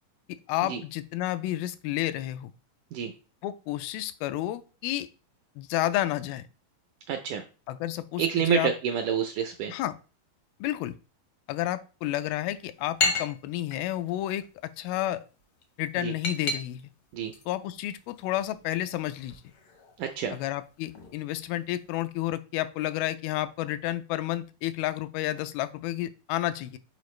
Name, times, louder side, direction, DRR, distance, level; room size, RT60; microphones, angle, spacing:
voice 1, 0.5-2.5 3.4-5.1 5.6-6.5 7.7-8.7 9.7-10.0 10.6-11.0 11.5-15.2 15.8-16.8 17.5-19.4 20.3-26.8, left 14 dB, 85° left, 11 dB, 2.4 m, -31 dB
voice 2, 7.1-7.4 8.2-9.7 16.0-16.1 17.1-17.3 20.0-20.4, right 9 dB, 80° right, 5 dB, 1.8 m, -28 dB
sound 1, 12.2-22.1, left 3 dB, 70° left, 1.2 m, -37 dB
6.7 x 4.8 x 3.1 m, 0.34 s
omnidirectional pair, 4.2 m